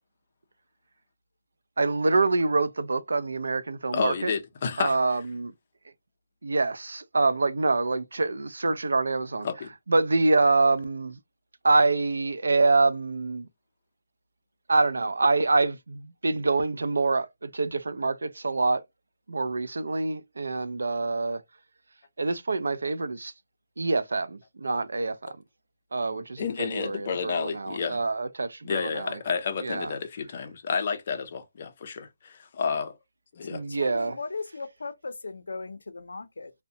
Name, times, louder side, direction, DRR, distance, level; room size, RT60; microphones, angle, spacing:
voice 1, 1.8-4.3 4.8-5.5 6.4-9.5 9.9-11.2 11.6-13.5 14.7-18.8 19.3-21.4 22.2-23.3 23.8-25.4 25.9-29.2 29.6-29.9 33.5-34.1, right 3 dB, 80° right, 0.4 m, -26 dB
voice 2, 3.9-5.0 9.4-9.7 26.4-28.0 28.6-33.0 33.3-33.6, left 6 dB, 30° left, 0.4 m, -30 dB
voice 3, 33.7-36.5, left 4 dB, 85° left, 0.5 m, -37 dB
2.6 x 2.0 x 2.6 m
hypercardioid pair, 180°, 0 cm